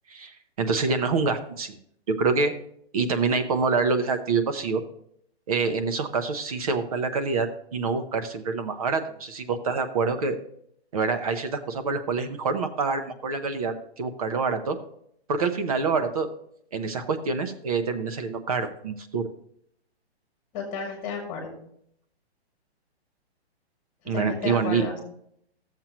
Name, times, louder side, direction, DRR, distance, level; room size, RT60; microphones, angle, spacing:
voice 1, 0.6-1.8 2.2-2.5 2.9-4.8 5.5-10.4 10.9-14.8 15.3-16.3 16.7-19.3 24.1-24.8, right 4 dB, 35° right, 8 dB, 0.7 m, -26 dB
voice 2, 20.5-21.5 24.1-25.0, left 5 dB, 20° left, 1 dB, 2.1 m, -33 dB
12.5 x 7.4 x 3.0 m, 0.69 s
hypercardioid pair, 175°, 32 cm